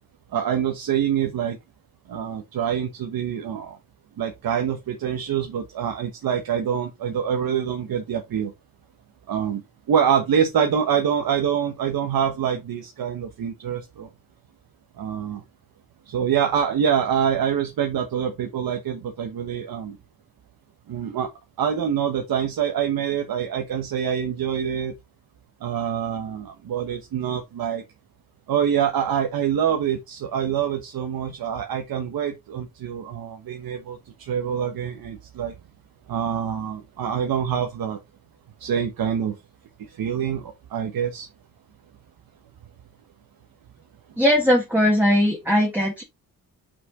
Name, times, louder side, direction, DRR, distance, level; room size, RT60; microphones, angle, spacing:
voice 1, 0.3-1.6 2.1-3.8 4.2-8.5 9.3-9.6 9.9-14.1 15.0-15.4 16.1-20.0 20.9-21.3 21.6-24.9 25.6-27.8 28.5-35.5 36.1-38.0 38.6-39.3 39.8-41.3, right 8 dB, 85° right, 1.2 m, -25 dB
voice 2, 44.2-46.0, equal, 5° right, 1.8 m, -19 dB
6.0 x 4.9 x 3.7 m
wide cardioid pair, 140°, 35 cm